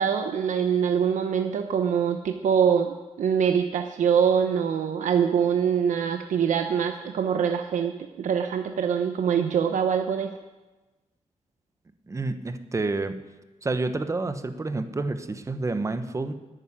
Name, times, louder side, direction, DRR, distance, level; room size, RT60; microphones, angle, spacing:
voice 1, 0.0-10.3, right 7 dB, 90° right, 6 dB, 0.9 m, -24 dB
voice 2, 12.1-13.2 13.6-16.3, right 3 dB, 25° right, 9 dB, 1.0 m, -29 dB
11.5 x 9.1 x 10.0 m, 1.1 s
wide cardioid pair, 130°, 13 cm